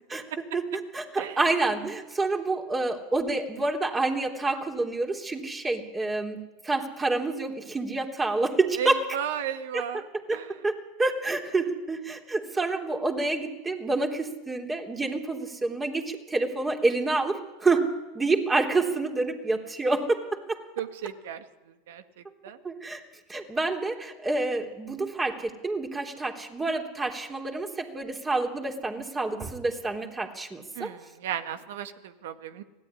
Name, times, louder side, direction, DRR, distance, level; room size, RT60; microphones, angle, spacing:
voice 1, 0.5-6.4 6.6-9.0 9.7-20.6 22.6-23.0 23.3-30.9, right 3 dB, 20° right, 3 dB, 3.5 m, -28 dB
voice 2, 8.8-10.1 10.3-10.5 20.8-21.4 21.9-22.0 22.4-22.6 30.7-32.6, right 9 dB, 70° right, 10 dB, 1.7 m, -34 dB
24.5 x 17.0 x 10.0 m, 1.2 s
hypercardioid pair, 90°, 0 cm